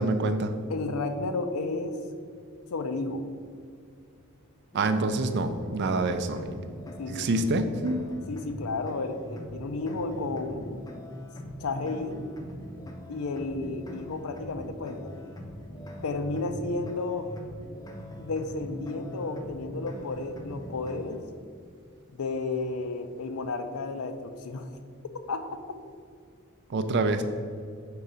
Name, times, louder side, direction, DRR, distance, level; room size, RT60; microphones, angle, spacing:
voice 1, 0.0-0.5 4.7-6.6 7.1-8.0 26.7-27.2, right 2 dB, 55° right, 9 dB, 0.4 m, -26 dB
voice 2, 0.7-2.0 2.7-3.2 7.0-7.5 8.3-10.8 11.6-12.3 13.1-15.1 16.0-17.3 18.2-21.2 22.1-24.7 25.1-25.8, left 3 dB, 80° left, 8 dB, 0.5 m, -32 dB
sound 1, 4.7-21.2, equal, 15° left, 0.6 m, -42 dB
4.8 x 3.8 x 5.5 m, 2.3 s
head